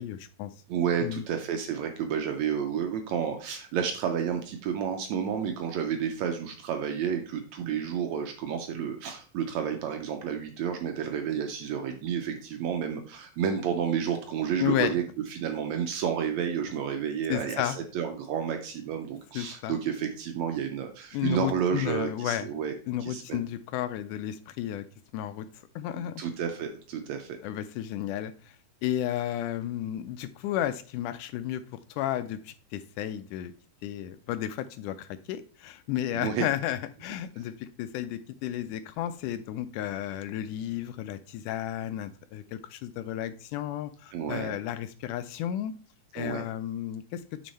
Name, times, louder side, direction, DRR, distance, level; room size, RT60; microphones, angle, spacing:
voice 1, 0.0-0.6 1.0-1.2 14.6-15.0 17.3-17.8 19.4-19.8 21.1-22.5 22.9-24.9 25.1-26.1 27.4-31.6 31.9-33.5 33.8-45.7 46.1-47.2, left 12 dB, 80° left, 13 dB, 1.9 m, -33 dB
voice 2, 0.7-15.0 15.3-22.8 23.0-23.4 25.9-27.4 36.1-36.5 44.1-44.5 46.2-46.4, right 8 dB, 75° right, 5 dB, 1.7 m, -31 dB
6.5 x 6.2 x 4.1 m, 0.40 s
omnidirectional pair, 3.9 m